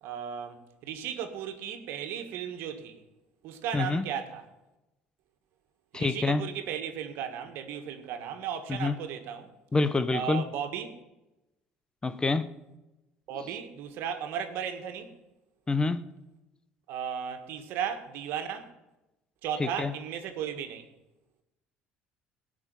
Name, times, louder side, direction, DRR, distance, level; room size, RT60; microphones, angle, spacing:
voice 1, 0.0-3.0 3.4-4.5 5.9-9.5 10.1-11.0 13.3-15.2 16.9-18.7 19.4-20.9, right 8 dB, 70° right, 1.8 m, -35 dB
voice 2, 3.7-4.0 5.9-6.4 8.7-9.0 9.7-10.4 12.0-12.5 15.7-16.0 19.6-19.9, left 3 dB, 20° left, 0.9 m, -26 dB
17.0 x 6.2 x 9.4 m
supercardioid pair, 75°, 4 cm